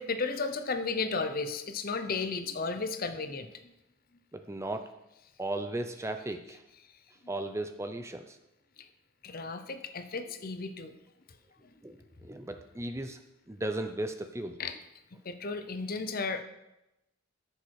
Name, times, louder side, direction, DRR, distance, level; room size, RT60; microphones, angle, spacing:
voice 1, 0.0-3.5 6.2-6.3 6.7-6.8 7.2-7.3 8.8-8.9 9.2-10.9 14.6-14.8 15.2-16.4, left 4 dB, 45° left, 9 dB, 0.8 m, -34 dB
voice 2, 4.3-4.9 5.4-6.6 7.3-8.4 11.8-13.2 13.5-14.6, right 1 dB, 15° right, 7 dB, 0.6 m, -36 dB
13.5 x 6.8 x 4.8 m, 0.92 s
head